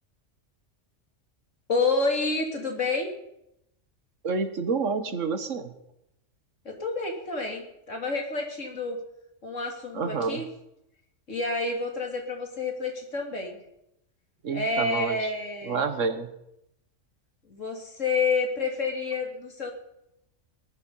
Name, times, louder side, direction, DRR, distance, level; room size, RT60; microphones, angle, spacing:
voice 1, 1.7-3.1 6.6-9.0 9.4-10.4 11.3-13.6 14.5-15.8 17.5-19.7, left 3 dB, 75° left, 2 dB, 3.2 m, -29 dB
voice 2, 4.2-5.7 9.9-10.5 14.4-15.3 15.6-16.3, right 4 dB, 75° right, 9 dB, 1.6 m, -28 dB
19.0 x 12.0 x 5.6 m, 0.83 s
omnidirectional pair, 1.3 m